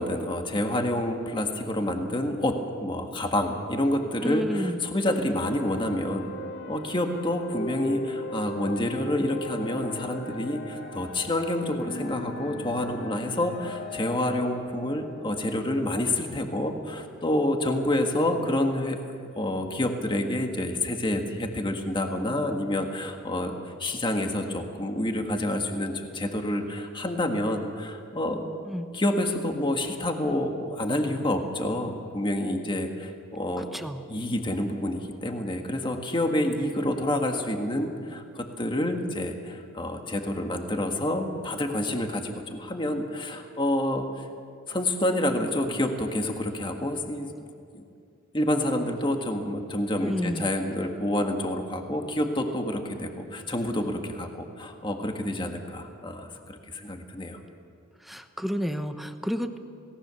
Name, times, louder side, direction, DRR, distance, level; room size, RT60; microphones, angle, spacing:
voice 1, 0.0-6.3 6.7-19.0 19.4-28.4 28.9-33.7 34.1-44.1 44.7-47.3 47.7-47.8 48.3-57.4, left 1 dB, 25° left, 4 dB, 1.7 m, -28 dB
voice 2, 4.2-4.8 28.7-28.9 33.6-34.1 50.0-50.5 58.0-59.6, equal, ahead, 7 dB, 1.0 m, -31 dB
sound 1, 5.3-16.5, left 1 dB, 55° left, 2.1 m, -39 dB
28.0 x 18.5 x 7.0 m, 2.3 s
head